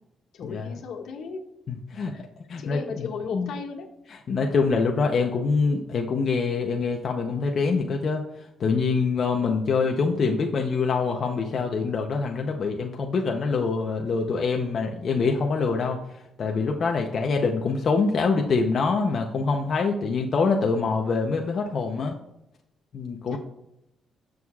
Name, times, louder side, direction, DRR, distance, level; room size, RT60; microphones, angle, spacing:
voice 1, 0.3-1.4 2.1-2.2 2.6-3.9 23.3-23.4, left 5 dB, 75° left, 0 dB, 1.6 m, -35 dB
voice 2, 1.7-2.1 2.5-3.1 3.3-3.5 4.3-8.2 8.6-16.0 16.4-22.1 22.9-23.4, left 4 dB, 45° left, 2 dB, 0.7 m, -25 dB
18.0 x 6.3 x 2.4 m, 0.87 s
cardioid pair, 145°, 0 cm